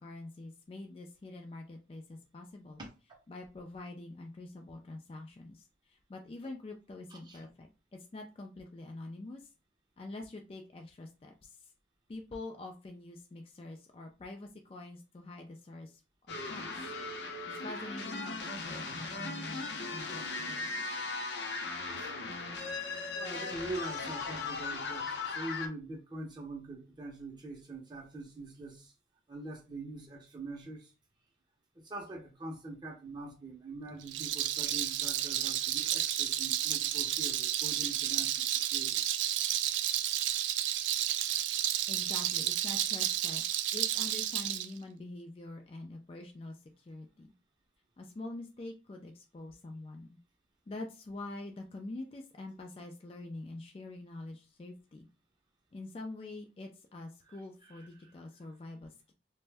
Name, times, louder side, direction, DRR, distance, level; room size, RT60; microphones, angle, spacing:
voice 1, 0.0-2.8 3.3-9.5 10.0-11.7 12.1-16.0 16.3-16.9 17.5-20.8 41.9-43.4 43.7-47.3 48.0-50.2 50.7-55.1 55.7-59.1, left 2 dB, 30° left, 0.3 m, -45 dB
voice 2, 7.1-7.4 22.0-22.1 23.1-28.9 29.3-30.9 31.7-39.0 57.6-57.7 58.0-58.1, right 2 dB, 25° right, 0.6 m, -44 dB
sound 1, 16.3-25.7, left 3 dB, 70° left, 0.6 m, -38 dB
Rattle, 34.0-44.7, right 12 dB, 90° right, 0.3 m, -31 dB
2.5 x 2.1 x 3.3 m
head